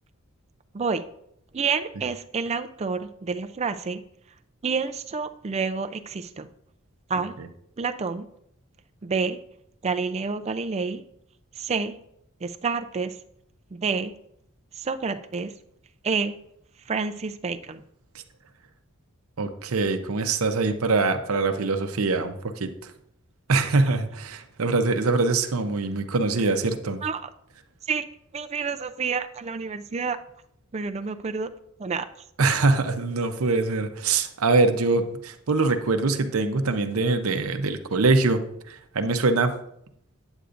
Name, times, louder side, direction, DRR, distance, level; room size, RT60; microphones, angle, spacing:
voice 1, 1.5-4.0 4.6-6.5 7.1-7.4 7.8-8.3 9.0-9.4 9.8-11.0 11.6-11.9 12.4-13.2 13.7-14.1 14.8-15.5 16.0-16.3 16.9-17.8 27.0-27.3 27.9-28.0 28.3-30.2 30.7-31.5 31.8-32.1, right 5 dB, 30° right, 8 dB, 0.4 m, -28 dB
voice 2, 19.4-22.9 23.5-27.0 32.4-38.4 38.7-39.5, right 3 dB, 75° right, 7 dB, 0.7 m, -23 dB
8.9 x 8.1 x 2.5 m, 0.73 s
head